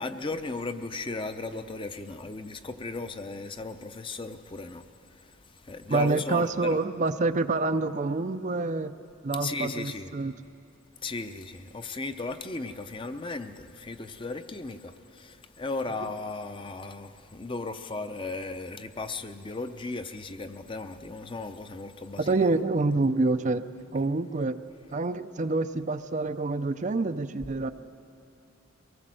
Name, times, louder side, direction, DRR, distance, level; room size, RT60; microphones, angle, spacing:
voice 1, 0.0-4.8 5.2-5.3 5.6-6.8 9.4-10.1 11.0-22.4, left 3 dB, 25° left, 0.6 m, -36 dB
voice 2, 5.9-8.9 9.2-10.3 22.2-23.6 23.9-24.6 24.9-27.7, right 3 dB, 35° right, 0.4 m, -27 dB
23.0 x 19.0 x 7.6 m
head